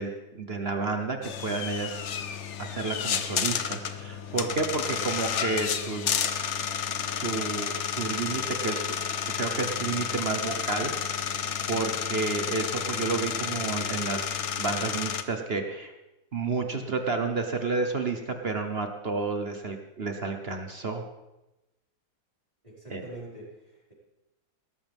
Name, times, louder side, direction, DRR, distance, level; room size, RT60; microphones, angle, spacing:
voice 1, 0.0-2.0 2.6-6.2 7.1-10.9 11.2-11.4 11.7-15.9 16.3-21.0 22.9-23.0, right 4 dB, 40° right, 5 dB, 1.0 m, -31 dB
sound 1, 1.2-15.2, left 7 dB, 60° left, 0.7 m, -31 dB
voice 2, 22.6-23.9, right 2 dB, 15° right, -8 dB, 5.6 m, -44 dB
18.0 x 13.5 x 3.6 m, 0.99 s
omnidirectional pair, 2.2 m